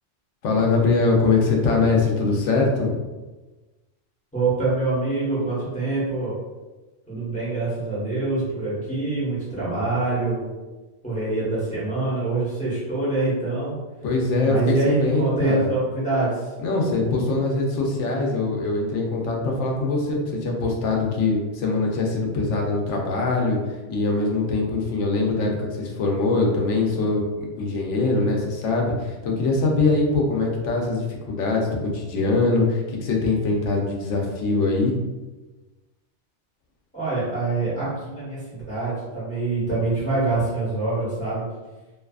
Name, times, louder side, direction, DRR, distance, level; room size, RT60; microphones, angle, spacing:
voice 1, 0.4-2.9 14.0-15.7 16.6-23.6 23.9-27.2 27.6-34.9, left 3 dB, 85° left, 0 dB, 0.9 m, -22 dB
voice 2, 4.3-6.3 7.1-10.5 11.0-13.8 14.4-16.5 36.9-41.4, right 3 dB, 5° left, -10 dB, 1.1 m, -25 dB
2.6 x 2.3 x 2.3 m, 1.2 s
omnidirectional pair, 1.2 m